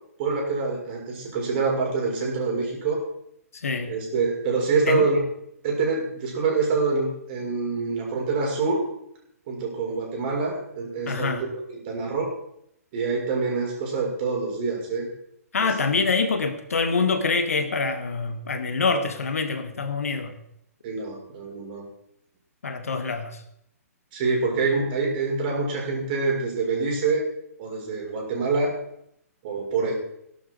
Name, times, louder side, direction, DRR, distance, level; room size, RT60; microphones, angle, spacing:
voice 1, 0.2-3.0 3.9-5.2 5.6-8.8 9.5-12.3 12.9-15.1 15.6-16.0 20.8-21.8 24.1-27.2 27.6-28.7 29.4-29.9, right 4 dB, 35° right, -1 dB, 6.4 m, -26 dB
voice 2, 3.5-3.9 4.9-5.1 11.1-11.4 15.5-20.3 22.6-23.4, left 4 dB, 65° left, 9 dB, 1.9 m, -25 dB
18.0 x 12.0 x 4.8 m, 0.75 s
figure-of-eight pair, 125°, 8 cm